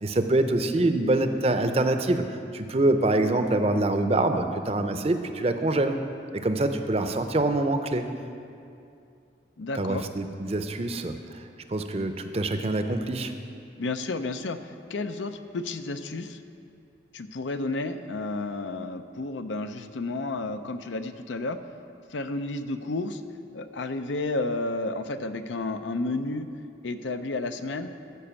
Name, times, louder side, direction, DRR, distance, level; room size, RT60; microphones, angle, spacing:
voice 1, 0.0-6.0 6.3-8.1 9.8-11.4 11.7-13.3, right 2 dB, 35° right, 7 dB, 0.5 m, -25 dB
voice 2, 9.6-10.1 13.8-16.4 17.1-21.6 22.1-23.2 23.5-26.5 26.8-27.9, left 2 dB, 90° left, 9 dB, 0.6 m, -31 dB
14.0 x 5.2 x 7.0 m, 2.5 s
head